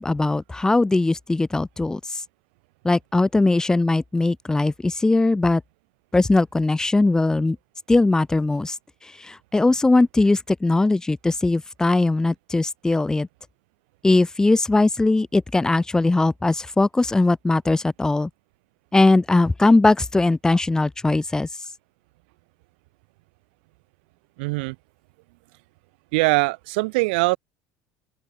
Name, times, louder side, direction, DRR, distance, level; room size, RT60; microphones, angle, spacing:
voice 1, 0.0-2.2 2.8-5.6 6.1-7.6 7.9-8.8 9.2-13.3 14.0-18.3 18.9-21.5, left 2 dB, 10° left, 3.6 m, -20 dB
voice 2, 24.4-24.7 26.1-27.4, right 26 dB, 85° right, 2.0 m, -22 dB
open air
supercardioid pair, 110°, 5 cm